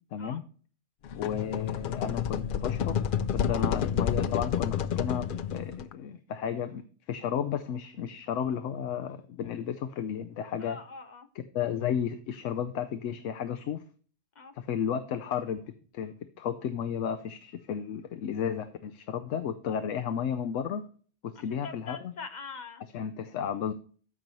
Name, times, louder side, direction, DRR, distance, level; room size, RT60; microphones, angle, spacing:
voice 1, 0.1-0.4 1.2-3.0 3.3-10.8 11.3-13.8 14.5-20.8 21.2-22.1 22.9-23.7, left 8 dB, 80° left, 9 dB, 1.0 m, -33 dB
sound 1, 1.0-5.9, left 8 dB, 60° left, 0.5 m, -30 dB
voice 2, 10.6-11.3 14.4-14.5 21.6-22.8, left 4 dB, 40° left, 7 dB, 1.0 m, -43 dB
14.0 x 5.3 x 3.0 m, 0.41 s
omnidirectional pair, 1.3 m